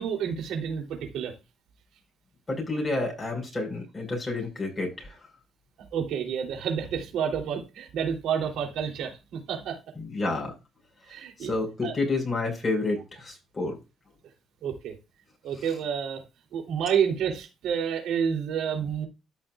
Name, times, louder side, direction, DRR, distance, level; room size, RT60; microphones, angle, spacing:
voice 1, 0.0-1.4 5.9-9.8 11.1-11.5 11.8-12.0 14.6-15.0 15.4-16.2 16.5-19.1, right 7 dB, 85° right, 3.5 m, -29 dB
voice 2, 2.5-5.1 10.0-10.5 11.5-13.8, left 2 dB, 25° left, 6.0 m, -29 dB
14.0 x 6.1 x 2.5 m
cardioid pair, 90°, 0 cm